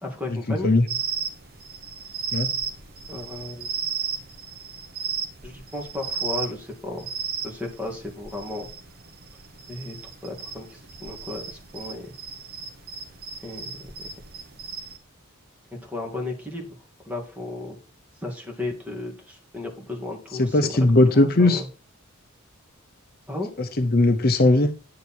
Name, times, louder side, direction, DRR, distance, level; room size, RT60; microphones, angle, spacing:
voice 1, 0.0-0.7 3.1-3.7 5.4-7.1 7.4-8.7 9.7-10.0 10.2-12.1 13.4-14.1 15.8-16.7 17.0-17.8 18.2-20.9 21.1-21.7 23.3-23.5, left 2 dB, 5° right, 0 dB, 2.3 m, -34 dB
sound 1, 0.9-15.0, right 6 dB, 45° right, 1.1 m, -34 dB
voice 2, 20.4-21.6 23.6-24.7, left 2 dB, 45° left, 7 dB, 0.8 m, -18 dB
9.5 x 6.8 x 4.4 m, 0.34 s
head